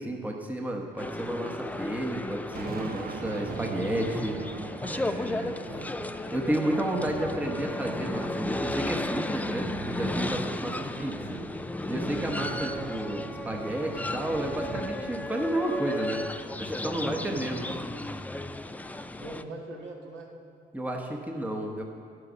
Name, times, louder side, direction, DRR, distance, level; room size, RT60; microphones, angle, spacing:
voice 1, 0.0-4.4 4.9-5.8 6.3-11.4 11.9-16.2 16.6-17.8 20.7-21.8, right 1 dB, 10° right, 2 dB, 1.0 m, -32 dB
sound 1, 1.0-19.4, left 2 dB, 10° left, 0.4 m, -34 dB
Thunder, 2.5-16.8, right 5 dB, 50° right, 0.8 m, -42 dB
voice 2, 12.6-13.2 19.2-20.3, right 2 dB, 70° right, -1 dB, 1.9 m, -41 dB
9.9 x 7.9 x 6.2 m, 2.3 s
cardioid pair, 90°, 20 cm